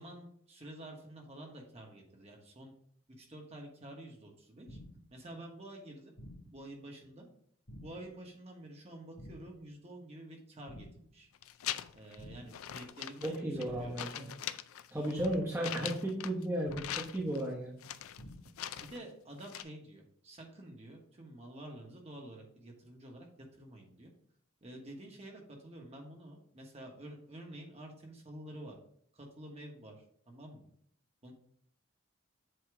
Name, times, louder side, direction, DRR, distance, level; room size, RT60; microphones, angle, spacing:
voice 1, 0.0-2.7 3.2-4.8 5.1-6.1 6.5-7.3 7.8-10.9 11.1-11.3 11.9-14.1 15.0-15.3 18.7-24.1 24.6-28.8 29.1-30.7 31.2-31.3, right 1 dB, 30° right, 1 dB, 1.1 m, -49 dB
sound 1, 4.7-5.1 6.2-6.6 7.7-8.1 9.2-9.6 10.7-11.1 12.2-12.6 13.7-14.1 15.2-15.6 16.7-17.1 18.2-18.6, equal, 55° left, 1.7 m, -51 dB
sound 2, 11.4-12.2 12.5-13.7 14.0-16.4 16.7-17.4 17.8-19.0 19.4-19.6, left 11 dB, 75° left, 0.4 m, -42 dB
voice 2, 13.2-14.3 14.9-17.8, right 1 dB, 10° right, -4 dB, 0.9 m, -34 dB
7.7 x 2.9 x 4.8 m, 0.64 s
head